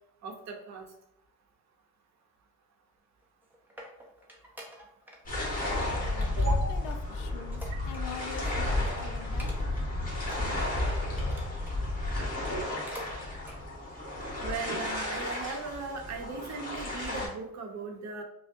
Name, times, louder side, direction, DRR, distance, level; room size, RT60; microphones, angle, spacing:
voice 1, 0.2-0.9 6.4-6.8 14.3-18.2, right 3 dB, 55° right, 3 dB, 0.7 m, -38 dB
sound 1, 3.2-5.2 5.4-5.8 6.2-8.4 8.7-8.8 9.2-9.9 10.2-11.8 12.3-13.1 13.4-13.6 14.1-14.2, equal, 5° right, 0.6 m, -48 dB
sound 2, 5.2-17.3, left 1 dB, 25° left, 1.4 m, -32 dB
voice 2, 5.7-7.6 7.9-9.5, left 7 dB, 80° left, 8 dB, 0.5 m, -44 dB
5.0 x 2.1 x 2.5 m, 0.79 s
cardioid pair, 125°, 33 cm